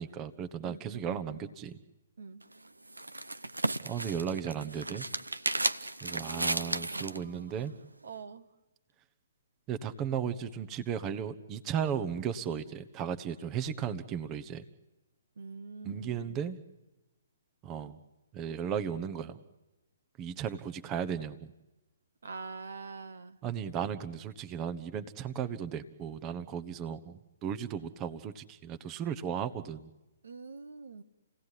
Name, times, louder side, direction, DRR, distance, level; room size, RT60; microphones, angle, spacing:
voice 1, 0.0-1.8 3.8-5.1 6.0-7.7 9.7-14.6 15.8-16.6 17.6-18.0 18.3-19.4 20.2-21.5 23.4-29.9, right 8 dB, 25° right, 10 dB, 1.2 m, -35 dB
voice 2, 0.6-1.5 2.2-2.4 5.8-7.7 8.0-8.4 15.4-16.4 22.2-23.4 30.2-31.0, right 4 dB, 65° right, 10 dB, 1.3 m, -45 dB
sound 1, 2.4-7.2, right 2 dB, 85° right, 0.9 m, -34 dB
29.5 x 18.0 x 10.0 m, 1.0 s
figure-of-eight pair, 130°, 0 cm